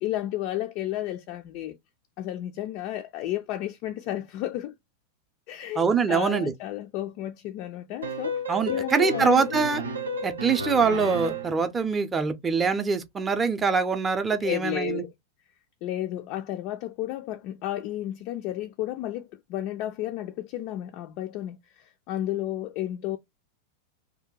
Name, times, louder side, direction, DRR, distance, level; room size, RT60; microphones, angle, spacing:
voice 1, 0.0-1.8 2.2-4.7 5.5-9.6 14.4-15.1 15.8-23.2, left 13 dB, 45° left, 0.3 m, -32 dB
voice 2, 5.8-6.5 8.5-9.8 10.2-15.0, right 5 dB, 15° right, 0.5 m, -24 dB
sound 1, 8.0-11.6, right 1 dB, 75° right, 0.5 m, -32 dB
2.8 x 2.2 x 3.8 m
figure-of-eight pair, 90°, 0 cm